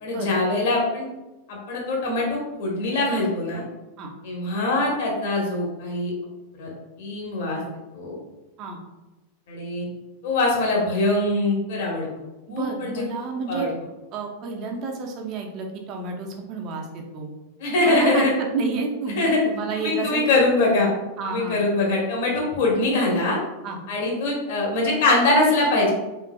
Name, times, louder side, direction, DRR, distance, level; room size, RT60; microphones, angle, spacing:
voice 1, 0.0-1.1 1.5-3.6 4.2-6.1 6.6-6.7 7.0-7.6 7.9-8.2 9.5-9.9 10.2-12.1 12.5-13.0 13.5-13.7 17.6-18.3 19.2-19.4 19.7-20.9 21.3-23.4 23.9-25.9, left 2 dB, 55° left, -2 dB, 1.1 m, -23 dB
voice 2, 12.5-13.7 14.1-17.3 17.8-20.2 21.2-21.6 23.6-23.8, right 4 dB, 40° right, 2 dB, 0.6 m, -30 dB
4.4 x 3.3 x 2.2 m, 1.1 s
figure-of-eight pair, 90°, 0 cm